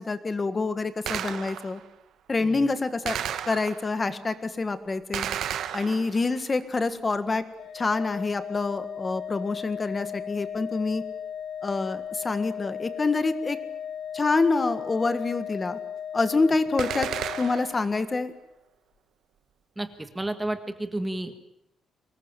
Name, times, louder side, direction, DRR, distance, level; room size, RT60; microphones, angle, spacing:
voice 1, 0.0-1.8 2.3-3.2 3.5-5.3 5.7-7.4 7.7-11.0 11.6-13.6 14.1-15.8 16.1-17.1 17.4-18.3, left 3 dB, 20° left, 11 dB, 1.6 m, -26 dB
Gunshot gunfire, 1.1-1.9 3.1-4.0 5.1-6.4 16.8-17.9, right 10 dB, 65° right, 1.5 m, -33 dB
Organ, 7.6-18.3, left 8 dB, 65° left, 1.5 m, -36 dB
voice 2, 19.8-21.4, right 1 dB, 10° right, 8 dB, 1.7 m, -31 dB
24.5 x 20.5 x 9.1 m, 0.81 s
cardioid pair, 170°, 0 cm